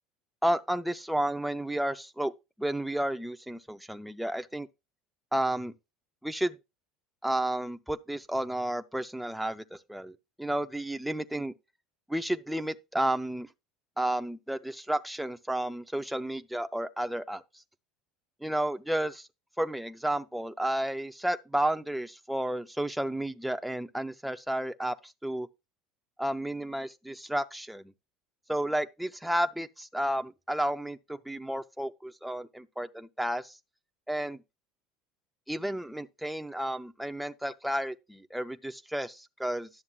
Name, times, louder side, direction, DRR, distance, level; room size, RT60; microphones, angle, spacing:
voice 1, 0.4-2.3 2.6-4.7 5.3-5.7 6.2-6.6 7.2-11.5 12.1-13.5 14.0-17.4 18.4-19.3 19.6-25.5 26.2-27.9 28.5-33.6 34.1-34.4 35.5-39.7, right 1 dB, ahead, 0.5 m, -32 dB
11.0 x 7.1 x 2.2 m
hypercardioid pair, 85°, 0 cm